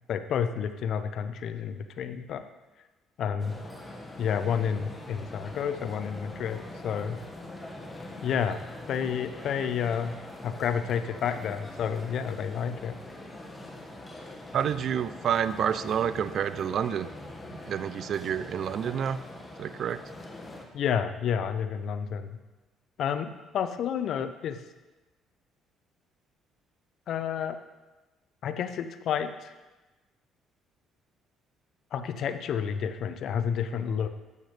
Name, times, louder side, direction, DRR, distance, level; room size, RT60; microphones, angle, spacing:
voice 1, 0.1-2.4 3.2-3.6 4.2-7.2 8.2-8.6 8.9-10.2 10.4-13.0 20.7-22.4 23.0-24.6 27.1-27.6 28.4-29.5 31.9-34.1, left 7 dB, 65° left, 10 dB, 0.6 m, -30 dB
sound 1, 3.4-20.7, left 1 dB, 20° left, 1.6 m, -43 dB
voice 2, 14.5-17.1 17.7-19.2 19.6-20.0, right 8 dB, 60° right, 14 dB, 0.4 m, -28 dB
12.0 x 8.3 x 3.3 m, 1.1 s
hypercardioid pair, 60°, 0 cm